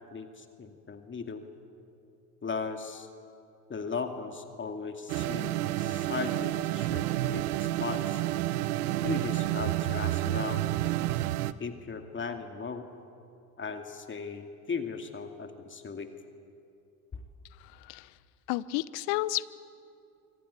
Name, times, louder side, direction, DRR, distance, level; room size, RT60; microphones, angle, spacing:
voice 1, 0.1-1.4 2.4-3.1 3.7-8.2 9.0-10.6 11.6-12.9 13.6-16.1 17.1-17.2, left 5 dB, 25° left, 5 dB, 2.4 m, -37 dB
sound 1, 5.1-11.5, right 15 dB, 70° right, 1.0 m, -30 dB
voice 2, 17.6-18.1 18.5-19.5, left 17 dB, 55° left, 18 dB, 0.9 m, -31 dB
26.5 x 24.5 x 8.4 m, 2.6 s
hypercardioid pair, 75°, 47 cm